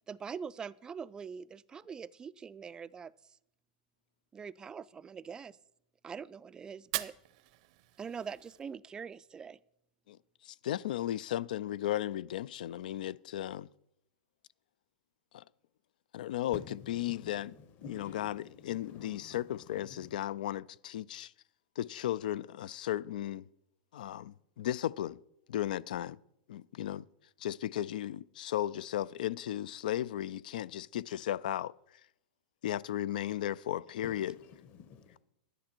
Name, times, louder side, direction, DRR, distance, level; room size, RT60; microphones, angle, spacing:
voice 1, 0.0-3.1 4.3-5.6 6.0-7.1 8.0-9.6, right 6 dB, 15° right, 0.3 m, -43 dB
Fire, 6.8-8.8, right 17 dB, 55° right, 0.6 m, -41 dB
voice 2, 10.4-13.7 15.3-15.4 16.1-16.6 16.9-17.5 17.9-21.3 21.8-23.4 23.9-25.2 25.5-26.2 26.5-27.0 27.4-31.7 32.6-34.3, left 12 dB, 75° left, 0.3 m, -35 dB
voice 3, 16.5-20.2 34.0-35.2, left 7 dB, 40° left, 1.0 m, -50 dB
10.5 x 10.0 x 4.4 m
hypercardioid pair, 125°, 5 cm